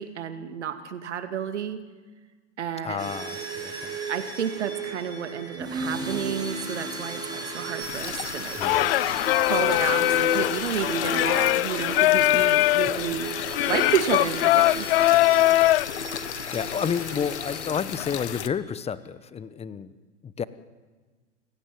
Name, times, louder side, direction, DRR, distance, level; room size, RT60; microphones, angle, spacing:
voice 1, 0.0-1.8 2.6-3.1 4.1-8.6 9.4-13.3 13.7-14.9, right 8 dB, 75° right, 9 dB, 2.5 m, -31 dB
voice 2, 2.8-4.0 8.5-8.9 12.8-13.0 16.5-20.0 20.2-20.4, left 7 dB, 15° left, 16 dB, 1.1 m, -31 dB
sound 1, 3.0-18.6, right 2 dB, 10° right, 5.3 m, -35 dB
sound 2, 7.8-18.5, left 10 dB, 70° left, 1.4 m, -35 dB
Singing, 8.6-15.9, left 17 dB, 55° left, 0.7 m, -22 dB
29.5 x 17.0 x 9.3 m, 1.4 s
hypercardioid pair, 100°, 35 cm